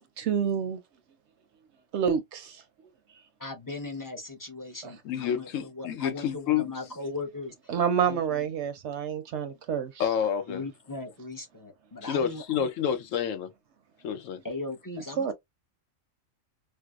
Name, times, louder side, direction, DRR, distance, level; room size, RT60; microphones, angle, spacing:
voice 1, 0.2-0.8 1.9-2.6 7.7-9.9 15.2-15.3, right 7 dB, 65° right, 0.8 m, -28 dB
voice 2, 3.4-7.7 8.0-8.4 10.5-12.7 14.4-15.3, left 3 dB, 25° left, 0.5 m, -38 dB
voice 3, 5.0-6.7 10.0-10.6 12.0-13.5 14.0-14.4, left 8 dB, 75° left, 1.0 m, -29 dB
4.5 x 2.1 x 2.3 m
omnidirectional pair, 1.4 m